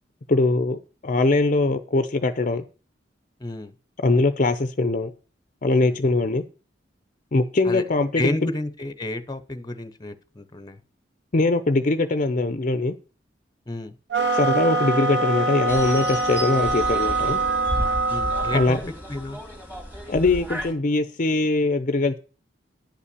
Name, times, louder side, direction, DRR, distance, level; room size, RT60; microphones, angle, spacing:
voice 1, 0.3-2.6 4.0-5.1 5.6-6.4 7.3-8.4 11.3-13.0 14.3-17.4 18.5-18.8 20.1-22.2, left 2 dB, 45° left, 11 dB, 0.7 m, -22 dB
voice 2, 3.4-3.7 5.8-6.0 7.6-7.8 8.2-10.8 13.7-13.9 18.1-18.8 19.1-19.4, left 2 dB, 25° left, 11 dB, 0.9 m, -30 dB
sound 1, 14.1-18.7, right 3 dB, 75° right, 0.9 m, -24 dB
sound 2, 15.7-20.7, equal, 10° right, 2.5 m, -33 dB
10.5 x 5.7 x 6.8 m, 0.36 s
head